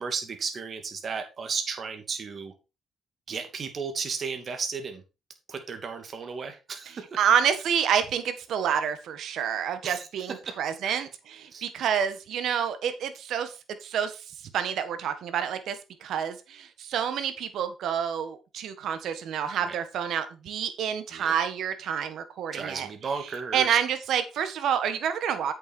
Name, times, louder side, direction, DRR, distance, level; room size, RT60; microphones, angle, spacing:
voice 1, 0.0-2.5 3.3-5.0 5.5-7.0 9.8-10.1 10.5-10.6 10.8-11.0 11.5-11.7 19.6-19.8 21.1-21.3 22.5-23.8, right 5 dB, 50° right, 6 dB, 2.5 m, -34 dB
voice 2, 7.2-13.5 13.8-14.1 14.5-22.9 23.5-25.5, right 8 dB, 75° right, 10 dB, 1.7 m, -28 dB
8.4 x 7.1 x 4.5 m, 0.29 s
cardioid pair, 90°, 0 cm